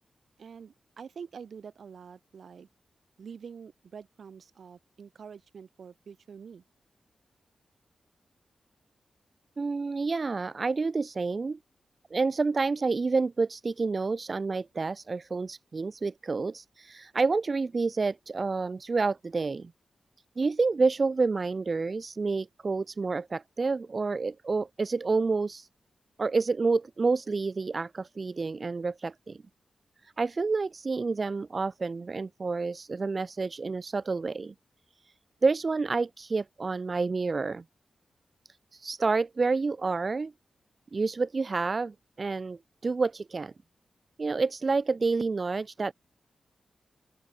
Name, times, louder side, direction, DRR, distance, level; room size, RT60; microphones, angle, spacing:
voice 1, 0.4-2.7 3.2-6.6, right 6 dB, 70° right, 5.3 m, -46 dB
voice 2, 9.6-11.6 12.1-19.7 20.4-25.7 26.2-29.4 30.0-34.5 35.4-37.6 38.7-40.3 40.9-43.5 44.2-45.9, right 4 dB, 40° right, 0.6 m, -29 dB
open air
wide cardioid pair, 105°, 0 cm